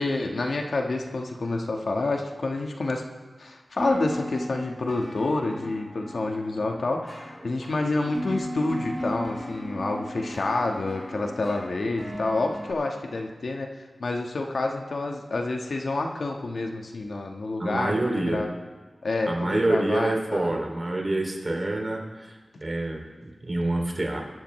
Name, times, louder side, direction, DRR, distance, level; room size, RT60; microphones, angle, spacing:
voice 1, 0.0-3.0 3.4-13.7 14.0-18.5 19.0-20.5 22.5-22.6, left 2 dB, 70° left, 2 dB, 1.4 m, -28 dB
sound 1, 3.8-12.7, equal, 5° right, 5.3 m, -36 dB
voice 2, 17.6-18.4 19.3-22.4 22.6-24.2, right 2 dB, 35° right, 0 dB, 2.7 m, -27 dB
22.0 x 12.5 x 3.2 m, 1.3 s
wide cardioid pair, 90°, 0 cm